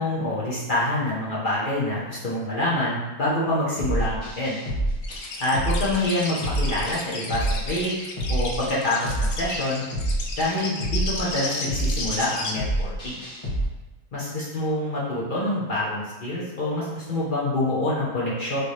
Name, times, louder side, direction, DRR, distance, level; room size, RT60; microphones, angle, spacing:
voice 1, 0.0-4.6 5.4-7.9 8.3-9.8 10.4-13.2 14.1-18.6, left 1 dB, 40° left, -7 dB, 0.8 m, -26 dB
sound 1, 3.8-13.6, right 1 dB, 20° left, 1.4 m, -28 dB
sound 2, 5.0-12.5, left 3 dB, 70° left, 0.6 m, -33 dB
4.4 x 3.3 x 3.2 m, 1.1 s
omnidirectional pair, 1.8 m